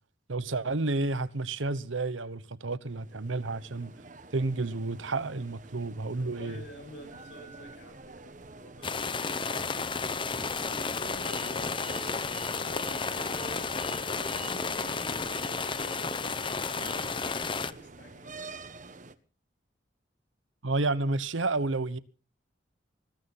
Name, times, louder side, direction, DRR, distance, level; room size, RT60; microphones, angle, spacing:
voice 1, 0.3-3.9 4.3-6.6 20.6-22.0, right 3 dB, 85° right, 1.1 m, -30 dB
sound 1, 2.9-19.2, right 3 dB, 40° right, 1.3 m, -47 dB
voice 2, 6.2-8.9 9.2-10.0 10.6-14.1 14.3-18.6, left 1 dB, 60° left, 7.2 m, -49 dB
Telephone, 7.1-18.0, right 3 dB, 15° right, 5.6 m, -56 dB
sound 2, 8.8-17.7, left 4 dB, 25° left, 0.8 m, -32 dB
21.0 x 14.5 x 4.2 m
head